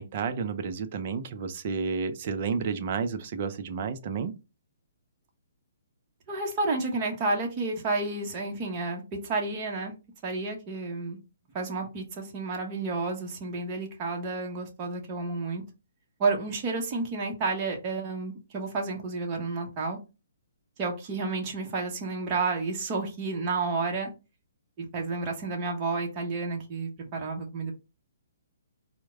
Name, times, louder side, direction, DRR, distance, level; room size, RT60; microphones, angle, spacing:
voice 1, 0.0-4.3, right 5 dB, 45° right, 0.6 m, -31 dB
voice 2, 6.3-9.9 10.2-11.2 11.5-15.6 16.2-20.0 20.8-24.1 24.8-27.7, right 3 dB, 30° right, 0.9 m, -31 dB
4.5 x 2.1 x 3.5 m
figure-of-eight pair, 135°, 0 cm